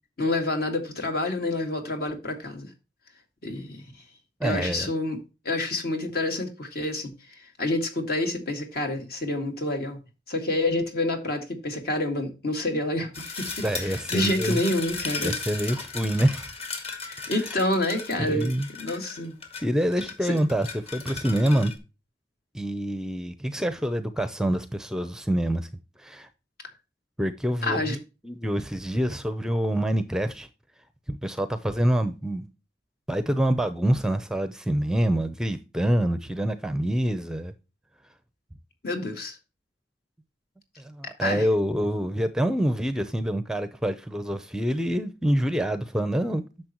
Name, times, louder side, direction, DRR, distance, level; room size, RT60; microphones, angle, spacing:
voice 1, 0.2-2.7 3.4-3.8 4.4-5.2 5.4-7.1 7.6-10.0 10.3-13.5 13.7-15.3 17.1-18.5 18.8-19.4 20.2-20.3 27.6-28.0 38.8-39.4 41.2-41.5, left 2 dB, 60° left, 2.3 m, -28 dB
voice 2, 4.4-4.9 13.6-14.6 15.2-16.5 17.2-17.3 18.2-18.7 19.6-21.7 22.5-25.7 26.0-26.3 27.2-28.0 28.2-30.5 31.1-32.5 33.1-37.5 40.8-46.4, right 1 dB, 5° right, 0.6 m, -26 dB
sound 1, 13.1-21.8, left 4 dB, 35° left, 1.7 m, -36 dB
10.0 x 6.7 x 2.9 m
head